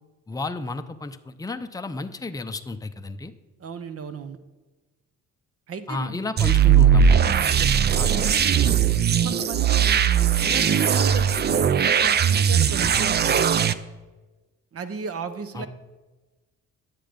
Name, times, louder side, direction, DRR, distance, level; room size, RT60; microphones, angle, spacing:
voice 1, 0.3-3.3 5.9-7.2 8.0-8.2 15.5-15.7, left 3 dB, 10° left, 8 dB, 0.6 m, -32 dB
voice 2, 3.6-4.4 5.7-6.2 7.6-7.9 8.2-10.0 10.4-13.5 14.7-15.7, right 6 dB, 50° right, 10 dB, 0.9 m, -35 dB
sound 1, 6.4-13.7, right 8 dB, 35° right, 0.5 m, -19 dB
10.0 x 7.6 x 5.2 m, 1.2 s
cardioid pair, 90°, 30 cm